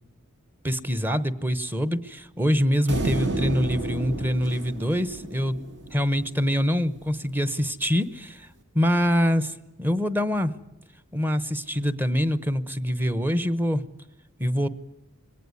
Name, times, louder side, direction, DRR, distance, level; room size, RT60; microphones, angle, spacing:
voice 1, 0.6-5.6 5.9-8.5 8.7-10.5 11.1-13.8 14.4-14.7, equal, 10° right, 15 dB, 0.9 m, -25 dB
sound 1, 2.9-6.3, right 2 dB, 55° right, 2.2 m, -31 dB
22.0 x 18.0 x 9.6 m, 1.0 s
head